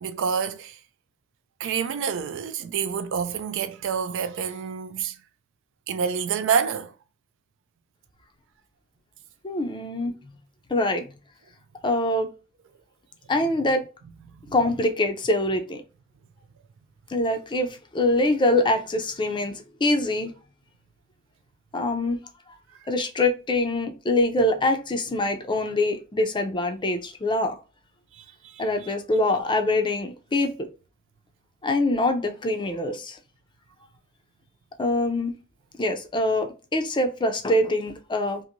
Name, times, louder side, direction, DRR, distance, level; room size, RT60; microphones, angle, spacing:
voice 1, 0.0-0.8 1.6-5.2 5.9-6.9 14.3-14.6 28.1-28.9, right 6 dB, 60° right, 0.3 m, -28 dB
voice 2, 9.4-10.2 10.7-11.1 11.8-12.3 13.3-13.8 14.5-15.8 17.1-20.3 21.7-22.2 22.9-27.6 28.6-30.7 31.6-33.2 34.8-35.4 35.8-38.4, left 2 dB, 20° left, 0.5 m, -24 dB
2.9 x 2.6 x 2.5 m
head